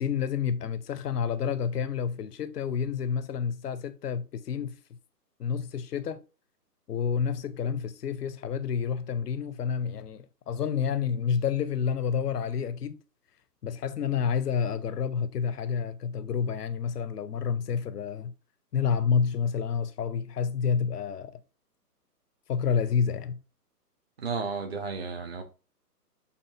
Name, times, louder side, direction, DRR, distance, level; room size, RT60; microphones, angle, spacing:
voice 1, 0.0-4.8 5.4-6.2 6.9-13.0 13.6-18.3 18.7-21.4 22.5-23.4, left 7 dB, 75° left, 0.6 m, -29 dB
voice 2, 24.2-25.4, right 4 dB, 40° right, 0.8 m, -33 dB
6.8 x 2.4 x 2.5 m
figure-of-eight pair, 130°, 49 cm